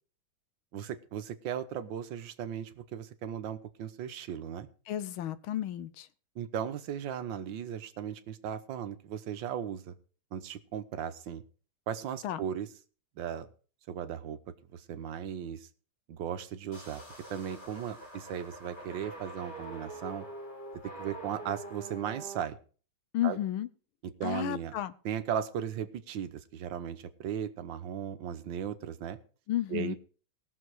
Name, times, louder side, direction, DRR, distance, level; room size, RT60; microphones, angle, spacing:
voice 1, 0.7-4.7 6.4-9.9 10.3-11.4 11.9-12.7 13.2-13.5 13.9-14.4 14.7-15.7 16.1-17.0 17.3-20.3 21.0-22.6 23.2-23.4 24.0-24.7 25.1-29.2 29.7-30.0, right 9 dB, 70° right, 10 dB, 1.6 m, -37 dB
voice 2, 4.9-6.1 12.2-12.4 23.1-23.7 24.2-24.9 29.5-30.0, left 12 dB, 90° left, 15 dB, 1.6 m, -32 dB
sound 1, 16.7-22.4, right 2 dB, 65° left, 7.1 m, -45 dB
18.5 x 6.9 x 4.7 m, 0.39 s
omnidirectional pair, 2.2 m